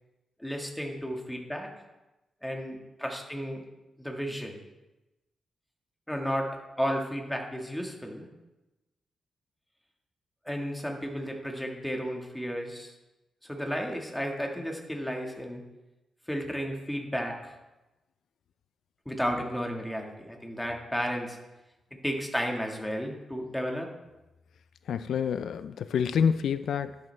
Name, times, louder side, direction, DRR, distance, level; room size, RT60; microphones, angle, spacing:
voice 1, 0.4-1.7 2.4-3.6 4.0-4.6 6.1-6.5 6.8-8.3 10.4-12.9 13.4-15.6 16.3-17.5 19.0-21.4 21.9-23.9, equal, 5° left, 1 dB, 1.5 m, -33 dB
voice 2, 24.9-27.0, left 7 dB, 80° left, 12 dB, 0.4 m, -27 dB
11.0 x 10.5 x 3.3 m, 1.0 s
wide cardioid pair, 145°, 0 cm